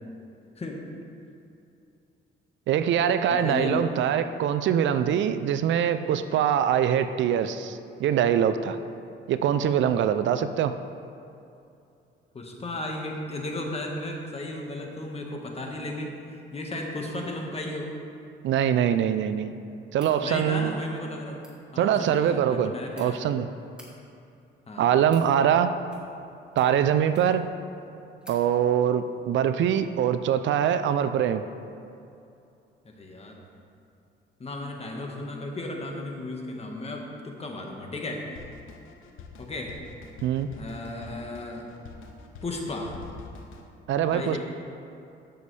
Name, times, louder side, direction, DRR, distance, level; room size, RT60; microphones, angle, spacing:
voice 1, 2.7-8.8 9.3-10.7 18.4-19.5 19.9-20.8 21.8-22.7 23.0-23.5 24.8-25.8 26.6-27.4 28.3-31.4 40.2-40.5 43.9-44.4, right 9 dB, 70° right, 11 dB, 0.4 m, -23 dB
voice 2, 3.3-3.9 12.3-17.9 20.2-21.4 21.7-23.2 24.7-24.9 32.8-33.4 34.4-38.3 39.4-39.8 40.6-41.6 42.4-42.9 44.1-44.4, left 2 dB, 30° left, 0 dB, 1.5 m, -34 dB
sound 1, 19.9-20.2 21.3-21.5 22.5-23.1 23.6-23.9 24.7-25.3 25.8-26.2 26.5-27.5 27.8-27.9 28.2-28.4, equal, 5° right, 1.9 m, -52 dB
Drum kit, 38.4-43.7, left 4 dB, 90° left, 0.8 m, -45 dB
13.5 x 6.9 x 3.3 m, 2.6 s
cardioid pair, 90°, 20 cm